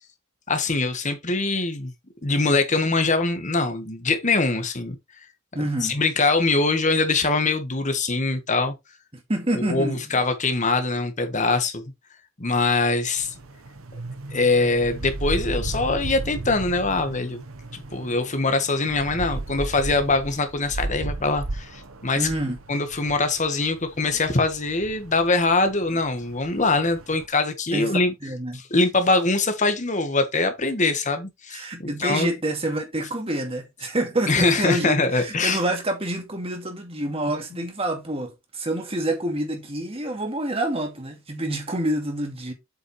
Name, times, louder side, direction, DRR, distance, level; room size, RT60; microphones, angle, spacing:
voice 1, 0.5-1.9 2.2-5.0 5.8-8.7 9.6-11.8 12.4-13.3 14.3-17.4 17.7-22.3 22.7-28.1 28.7-32.3 34.3-35.6, left 3 dB, 35° left, 1.4 m, -23 dB
voice 2, 5.5-6.0 9.1-10.2 22.1-22.6 24.1-24.2 25.9-26.0 27.7-28.6 31.5-42.5, right 1 dB, 30° right, 2.2 m, -27 dB
sound 1, 13.2-27.3, right 2 dB, 90° right, 1.0 m, -35 dB
8.0 x 5.6 x 3.2 m
head